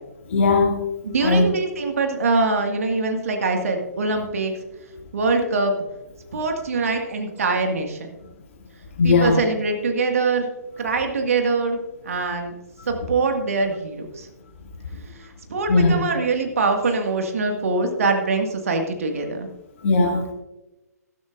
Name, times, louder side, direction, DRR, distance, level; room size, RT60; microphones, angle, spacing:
voice 1, 0.3-0.7 1.2-1.5 9.0-9.4 15.7-16.0 19.8-20.3, left 3 dB, 50° left, -1 dB, 2.3 m, -18 dB
voice 2, 1.0-4.5 5.1-5.7 6.3-8.0 9.0-10.5 10.8-11.8 12.0-12.5 12.9-14.3 15.5-19.5, right 3 dB, 55° right, 4 dB, 1.8 m, -23 dB
14.5 x 13.0 x 2.5 m, 0.99 s
figure-of-eight pair, 125°, 9 cm